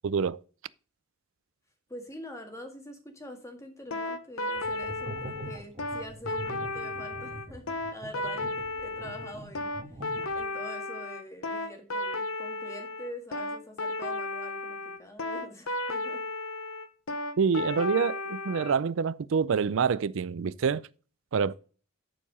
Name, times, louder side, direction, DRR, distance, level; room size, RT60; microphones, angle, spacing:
voice 1, 0.0-0.4 17.4-20.8 21.3-21.5, right 6 dB, 60° right, 0.4 m, -26 dB
voice 2, 1.9-16.2, equal, 15° left, 1.7 m, -45 dB
sound 1, 3.9-18.8, left 2 dB, 70° left, 0.9 m, -34 dB
sound 2, 4.6-10.6, right 1 dB, 30° right, 1.9 m, -43 dB
10.0 x 4.7 x 5.4 m
head